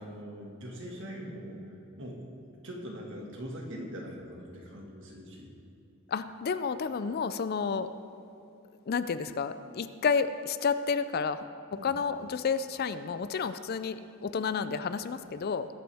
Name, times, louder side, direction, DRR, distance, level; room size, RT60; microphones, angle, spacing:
voice 1, 0.0-2.4 2.6-5.5 11.7-11.9, equal, 60° right, -1 dB, 1.8 m, -42 dB
voice 2, 6.1-7.9 8.9-11.4 11.8-15.7, left 5 dB, 45° left, 12 dB, 0.4 m, -30 dB
20.0 x 9.0 x 3.5 m, 2.7 s
head